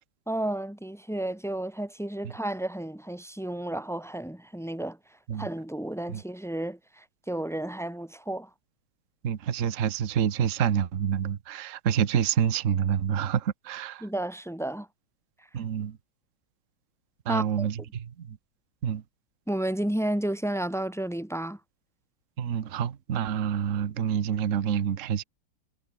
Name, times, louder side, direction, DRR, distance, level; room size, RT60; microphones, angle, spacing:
voice 1, 0.3-5.0 5.4-8.5 14.0-14.9 17.3-17.7 19.5-21.6, right 1 dB, ahead, 1.6 m, -32 dB
voice 2, 9.2-14.1 15.5-16.0 17.2-18.4 18.8-19.0 22.4-25.2, right 8 dB, 45° right, 1.2 m, -27 dB
omnidirectional pair, 2.4 m